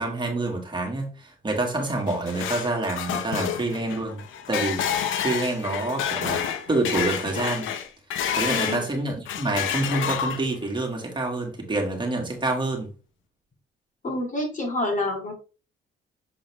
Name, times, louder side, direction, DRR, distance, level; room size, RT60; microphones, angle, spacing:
voice 1, 0.0-4.2 4.5-7.7 8.4-12.9, right 2 dB, 25° right, 2.1 m, -27 dB
sound 1, 1.8-8.9 9.3-10.7, left 8 dB, 80° left, 0.8 m, -29 dB
voice 2, 8.5-8.8 14.0-15.3, left 1 dB, 40° left, 2.3 m, -27 dB
7.4 x 3.8 x 3.4 m
cardioid pair, 90°, 20 cm